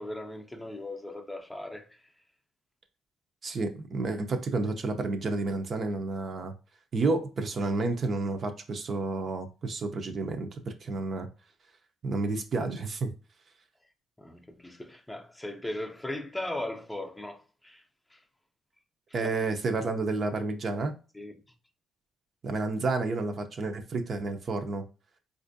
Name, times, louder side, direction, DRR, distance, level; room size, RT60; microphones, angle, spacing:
voice 1, 0.0-2.0 14.2-17.8 18.1-18.2 21.1-21.3, left 1 dB, 10° left, 0.6 m, -38 dB
voice 2, 3.4-6.5 6.9-11.3 12.0-13.1 19.1-20.9 22.4-24.8, right 3 dB, 50° right, 0.6 m, -30 dB
4.2 x 2.5 x 2.6 m
cardioid pair, 90°, 0 cm